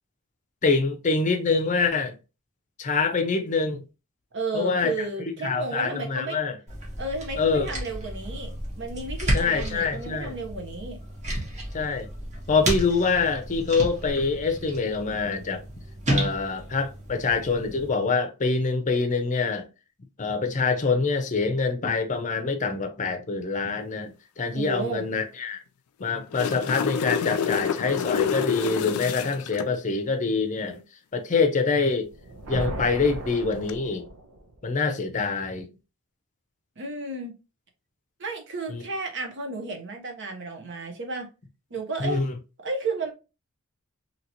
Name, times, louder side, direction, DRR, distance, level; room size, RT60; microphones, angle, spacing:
voice 1, 0.6-2.1 2.8-3.8 4.5-5.1 5.4-6.6 7.4-7.7 9.3-10.3 11.7-12.1 12.5-15.6 16.1-19.7 20.2-25.6 26.0-30.8 31.1-32.1 32.5-34.1 34.6-35.7 38.7-38.8 42.0-42.4, left 4 dB, 35° left, 0.5 m, -25 dB
voice 2, 4.3-6.4 7.0-11.0 16.2-16.3 24.5-25.0 36.8-37.3 38.2-41.3 41.7-42.2 42.6-43.1, right 3 dB, 55° right, 0.8 m, -33 dB
sound 1, 6.7-17.9, right 1 dB, 35° right, 1.0 m, -32 dB
sound 2, 26.1-29.7 33.5-33.7, left 7 dB, 90° left, 0.3 m, -28 dB
sound 3, 32.0-34.6, right 2 dB, 90° right, 0.7 m, -36 dB
2.8 x 2.8 x 2.7 m
head